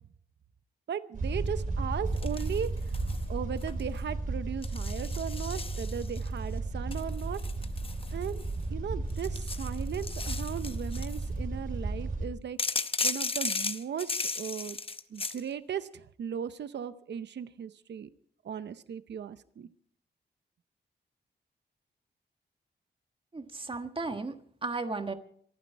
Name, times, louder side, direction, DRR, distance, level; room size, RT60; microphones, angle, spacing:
voice 1, 0.9-2.7 3.3-7.4 8.1-8.4 8.7-12.6 13.0-14.8 15.1-18.1 18.4-19.7, right 8 dB, 75° right, 13 dB, 0.8 m, -37 dB
sound 1, 1.1-12.3, right 2 dB, 50° right, 4.3 m, -34 dB
sound 2, 2.2-3.2 3.6-4.0 4.6-6.3 6.9-8.6 9.1-11.3 12.6-15.4, left 4 dB, 30° left, 0.8 m, -35 dB
voice 2, 23.3-25.1, right 3 dB, 30° right, 7 dB, 1.5 m, -35 dB
26.0 x 9.6 x 4.5 m, 0.63 s
wide cardioid pair, 100°, 18 cm